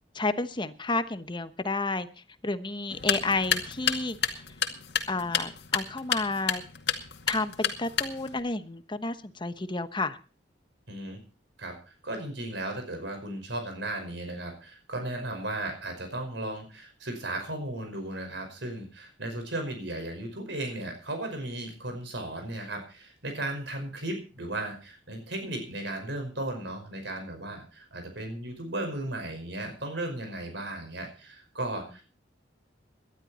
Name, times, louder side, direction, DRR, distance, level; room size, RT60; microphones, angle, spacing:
voice 1, 0.1-2.1 2.4-4.4 5.1-6.6 7.3-10.2, left 3 dB, 25° left, 11 dB, 1.1 m, -31 dB
sound 1, 2.9-8.4, left 7 dB, 65° left, 2.2 m, -31 dB
voice 2, 10.9-11.2 11.6-32.0, right 1 dB, 70° right, 5 dB, 5.4 m, -35 dB
19.0 x 12.0 x 4.3 m, 0.35 s
head